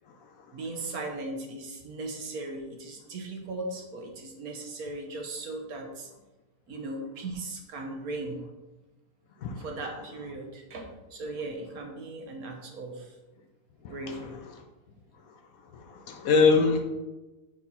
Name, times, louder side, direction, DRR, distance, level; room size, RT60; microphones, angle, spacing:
voice 1, 0.5-6.1 6.7-8.4 9.6-13.1 13.9-14.4, right 2 dB, 65° right, 2 dB, 1.4 m, -38 dB
voice 2, 13.8-14.4 15.7-16.8, left 4 dB, 70° left, 4 dB, 1.0 m, -24 dB
4.8 x 4.3 x 5.4 m, 1.1 s
omnidirectional pair, 1.8 m